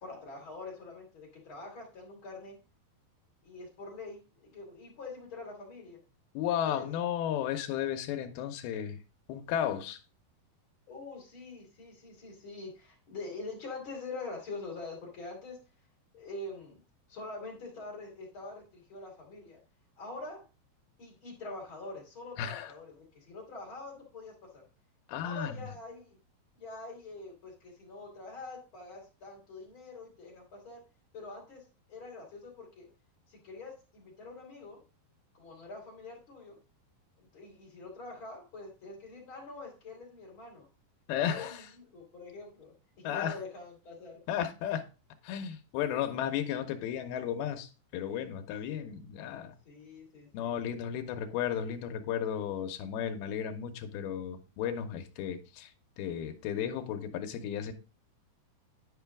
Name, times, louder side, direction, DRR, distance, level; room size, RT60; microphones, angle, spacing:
voice 1, 0.0-2.6 3.4-6.0 6.6-6.9 10.9-15.6 16.1-16.8 17.1-19.6 20.0-20.4 21.0-24.6 25.2-26.2 26.6-30.8 31.1-31.6 31.9-32.9 33.3-34.8 35.3-36.6 37.2-40.7 41.2-44.2 49.6-50.7, left 3 dB, 35° left, 2.6 m, -45 dB
voice 2, 6.3-9.0 9.3-10.0 22.4-22.7 25.1-25.7 41.1-41.6 43.0-43.4 44.3-44.8 45.2-49.5 50.3-55.7 56.0-57.7, left 9 dB, 75° left, 2.6 m, -34 dB
10.5 x 4.9 x 3.5 m
omnidirectional pair, 4.9 m